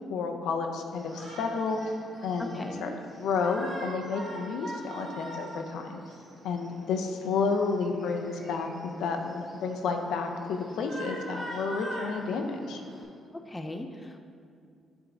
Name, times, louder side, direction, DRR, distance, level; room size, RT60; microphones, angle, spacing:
voice 1, 0.0-1.8 2.2-2.9 3.2-6.0 6.4-12.8, left 4 dB, 80° left, 4 dB, 0.5 m, -31 dB
Shout, 0.9-13.0, right 1 dB, 35° right, 1.3 m, -43 dB
voice 2, 2.4-3.0 13.3-14.2, left 1 dB, 15° left, 6 dB, 0.4 m, -38 dB
7.8 x 3.6 x 3.8 m, 2.3 s
cardioid pair, 90°, 0 cm